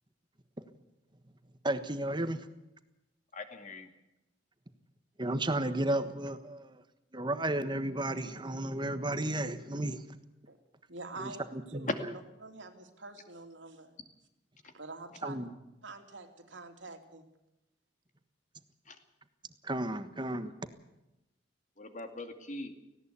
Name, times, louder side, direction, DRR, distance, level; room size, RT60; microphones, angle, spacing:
voice 1, 1.6-2.5 5.2-6.8 7.1-10.0 11.2-11.9 15.2-15.5 19.6-20.5, right 1 dB, 25° right, 1.3 m, -33 dB
voice 2, 3.3-3.9 14.6-14.7 18.9-19.0 21.8-22.8, left 2 dB, 45° left, 2.4 m, -43 dB
voice 3, 10.9-14.0 14.7-15.4 15.8-17.2, right 3 dB, 90° right, 3.0 m, -46 dB
18.5 x 17.0 x 8.4 m
head